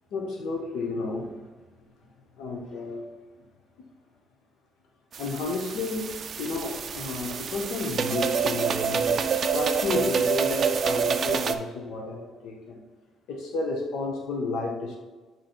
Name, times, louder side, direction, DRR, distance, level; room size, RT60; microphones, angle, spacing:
voice 1, 0.1-1.5 2.4-3.1 5.2-9.2 9.5-12.8 13.3-15.0, left 3 dB, 80° left, 1 dB, 0.9 m, -32 dB
sound 1, 5.1-11.6, right 6 dB, 40° right, 0.3 m, -27 dB
7.9 x 3.0 x 4.4 m, 1.3 s
cardioid pair, 165°, 0 cm